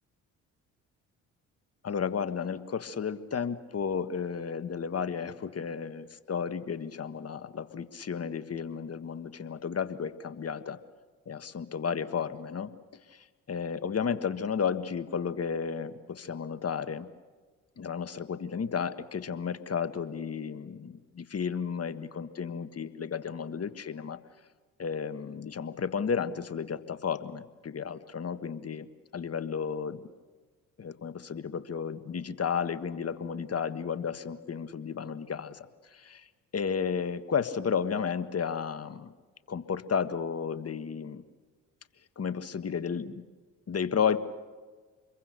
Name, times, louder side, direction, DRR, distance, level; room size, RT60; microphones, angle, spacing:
voice 1, 1.8-10.8 11.3-12.7 13.1-17.1 17.8-24.2 24.8-28.8 29.1-30.0 30.8-36.3 36.5-39.1 39.5-41.2 42.2-43.2 43.7-44.2, left 6 dB, 40° left, 11 dB, 1.6 m, -33 dB
27.0 x 22.5 x 6.8 m, 1.4 s
hypercardioid pair, 55°, 38 cm